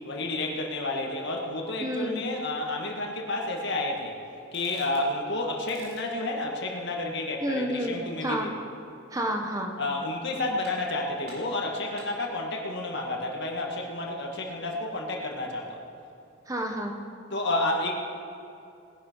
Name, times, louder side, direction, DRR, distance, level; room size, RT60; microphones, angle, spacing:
voice 1, 0.0-4.1 4.5-8.6 9.8-15.8 17.3-17.9, left 2 dB, 60° left, 0 dB, 2.0 m, -30 dB
voice 2, 1.8-2.2 7.4-7.9 8.2-8.5 9.1-9.7 16.5-16.9, right 1 dB, 15° right, 2 dB, 1.0 m, -29 dB
sound 1, 4.4-5.1 5.6-6.2 9.2-9.7 10.1-10.2 10.6-11.0 11.3-12.2, right 1 dB, 50° right, 3.5 m, -51 dB
20.0 x 11.0 x 4.7 m, 2.6 s
head